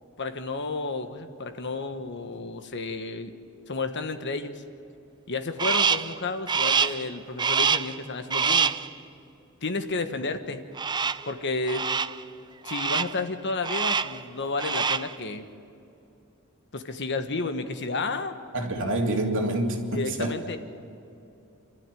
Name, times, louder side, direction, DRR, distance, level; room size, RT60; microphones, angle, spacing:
voice 1, 0.2-3.3 3.7-4.6 5.3-8.8 9.6-10.7 11.3-11.9 12.6-15.5 16.7-18.4 19.9-20.6, left 3 dB, 55° left, 8 dB, 1.3 m, -31 dB
Crow, 5.6-6.1 6.5-7.0 7.4-8.0 8.3-8.9 10.8-11.3 11.7-12.2 12.7-13.2 13.6-14.2 14.5-15.1, right 6 dB, 20° right, 0.4 m, -25 dB
voice 2, 18.5-20.3, right 1 dB, 60° right, 1 dB, 2.8 m, -27 dB
29.0 x 13.0 x 9.2 m, 2.8 s
head